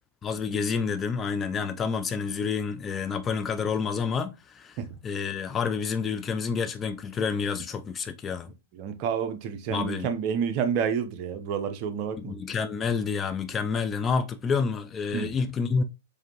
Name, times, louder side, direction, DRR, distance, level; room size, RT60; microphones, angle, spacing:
voice 1, 0.2-4.8 5.0-8.5 9.7-10.1 12.2-15.8, left 5 dB, 20° left, 0.3 m, -29 dB
voice 2, 8.8-12.3 15.1-15.3, right 7 dB, 45° right, 0.7 m, -29 dB
4.9 x 2.7 x 2.9 m
hypercardioid pair, 125°, 0 cm